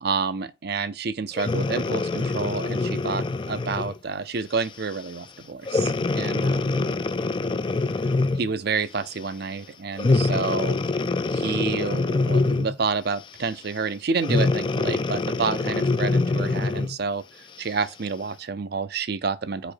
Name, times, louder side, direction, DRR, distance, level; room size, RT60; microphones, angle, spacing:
voice 1, 0.0-6.9 8.4-10.8 11.3-17.2 17.6-19.7, right 4 dB, 50° right, 0.6 m, -29 dB
Breathing, 1.3-4.0 4.6-4.8 5.7-8.5 10.0-12.8 14.2-17.0 17.6-17.7, left 3 dB, 25° left, 0.3 m, -24 dB
5.0 x 4.9 x 4.4 m
head